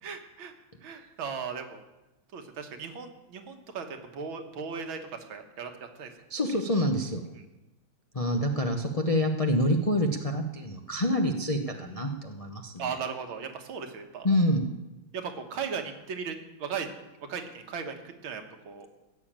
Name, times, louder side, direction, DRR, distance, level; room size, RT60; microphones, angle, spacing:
voice 1, 0.0-0.5 0.8-1.8 2.3-6.1 11.7-12.1 12.8-14.3 15.1-16.9 17.3-18.9, right 6 dB, 75° right, 6 dB, 2.1 m, -37 dB
voice 2, 6.3-7.2 8.1-12.7 14.2-14.6, equal, 45° left, 3 dB, 0.4 m, -27 dB
15.0 x 7.0 x 8.8 m, 1.0 s
omnidirectional pair, 2.3 m